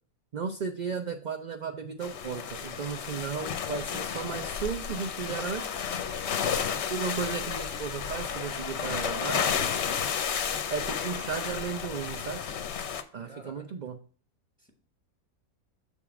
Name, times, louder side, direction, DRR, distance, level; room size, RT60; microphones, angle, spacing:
voice 1, 0.3-5.7 6.9-9.6 10.7-12.4 13.1-14.0, right 6 dB, 50° right, 0.5 m, -35 dB
sound 1, 2.0-13.0, left 7 dB, 60° left, 0.9 m, -32 dB
voice 2, 13.2-13.9 14.6-14.7, left 1 dB, 5° left, 1.4 m, -51 dB
7.4 x 3.6 x 5.9 m
omnidirectional pair, 1.5 m